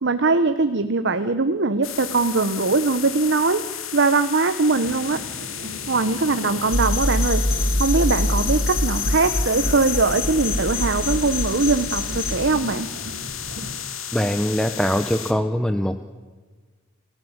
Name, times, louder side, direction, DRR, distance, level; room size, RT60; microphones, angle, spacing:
voice 1, 0.0-3.6 3.9-5.2 5.9-7.4 7.8-12.9, right 3 dB, 60° right, 10 dB, 1.1 m, -21 dB
sound 1, 1.8-15.3, left 10 dB, 85° left, 2.2 m, -33 dB
sound 2, 4.7-13.7, right 1 dB, 75° right, 3.5 m, -38 dB
sound 3, 6.7-12.4, left 1 dB, 45° left, 2.7 m, -24 dB
voice 2, 14.1-16.0, equal, 5° left, 9 dB, 0.9 m, -22 dB
30.0 x 15.5 x 8.1 m, 1.4 s
head